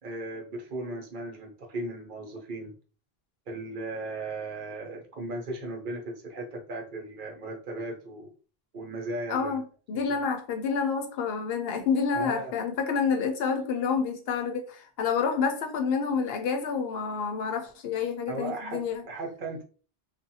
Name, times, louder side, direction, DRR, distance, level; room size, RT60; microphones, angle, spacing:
voice 1, 0.0-2.7 3.5-8.3 8.7-9.6 10.1-10.2 12.1-12.5 18.3-19.6, right 2 dB, 55° right, 0.8 m, -37 dB
voice 2, 9.3-19.0, left 5 dB, 75° left, 0.8 m, -28 dB
2.5 x 2.2 x 2.7 m
omnidirectional pair, 1.0 m